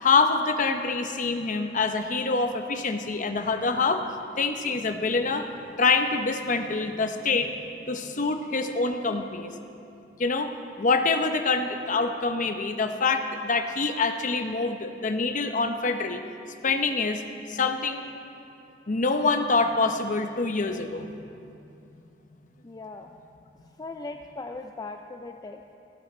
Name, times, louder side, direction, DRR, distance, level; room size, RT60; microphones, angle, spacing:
voice 1, 0.0-4.0 4.4-9.5 10.2-10.5 10.8-16.2 16.6-17.2 17.5-18.0 18.9-21.3, left 4 dB, 45° left, 7 dB, 0.8 m, -26 dB
voice 2, 22.6-23.1 23.8-25.7, left 3 dB, 20° left, 5 dB, 0.4 m, -39 dB
18.0 x 9.2 x 4.3 m, 2.6 s
head